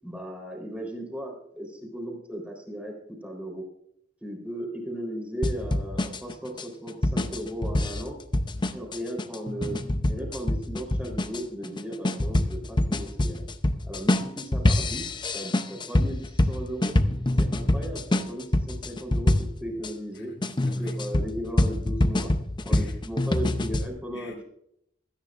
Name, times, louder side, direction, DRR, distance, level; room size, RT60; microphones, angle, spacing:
voice 1, 0.0-2.9 3.2-3.6 4.2-8.2 8.7-9.8 10.1-13.5 13.8-16.9 17.4-19.3 19.6-20.3 20.8-22.3 22.6-24.4, equal, 5° right, 0 dB, 3.8 m, -36 dB
sound 1, 5.4-19.9 20.4-23.9, left 1 dB, 25° left, 0.7 m, -26 dB
voice 2, 20.1-21.0 22.7-23.0 24.1-24.4, left 1 dB, 75° left, -1 dB, 2.1 m, -46 dB
25.0 x 10.0 x 2.5 m, 0.72 s
head